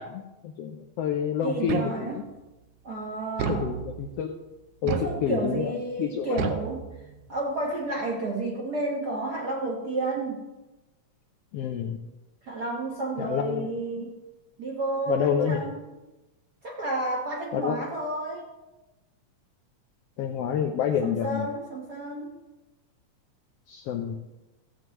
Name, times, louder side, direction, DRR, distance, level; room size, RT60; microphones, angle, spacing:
voice 1, 0.0-2.1 3.5-4.3 4.8-6.5 11.5-12.0 13.2-13.7 15.1-15.6 17.5-17.8 20.2-21.5 23.7-24.2, left 8 dB, 80° left, 3 dB, 1.4 m, -28 dB
voice 2, 1.4-2.2 2.8-3.7 4.8-6.8 7.3-10.4 12.4-14.1 14.6-15.8 16.6-18.5 21.0-22.3, right 2 dB, 55° right, -3 dB, 1.1 m, -31 dB
sound 1, 1.7-2.4 3.4-4.2 4.9-5.7 6.4-7.4, right 8 dB, 85° right, 2.1 m, -33 dB
15.5 x 7.9 x 3.1 m, 1.1 s
omnidirectional pair, 3.3 m